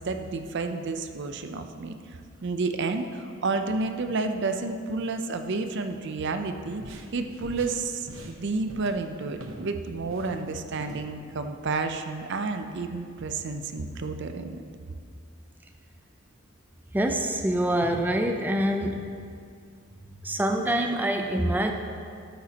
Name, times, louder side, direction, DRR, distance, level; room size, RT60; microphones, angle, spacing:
voice 1, 0.0-14.6, right 3 dB, 60° right, 7 dB, 0.6 m, -31 dB
sound 1, 6.8-9.7 10.0-11.1, right 1 dB, 90° right, 0.9 m, -44 dB
voice 2, 16.9-19.1 20.2-21.7, right 1 dB, 10° right, 3 dB, 0.5 m, -25 dB
12.5 x 9.3 x 2.9 m, 2.3 s
head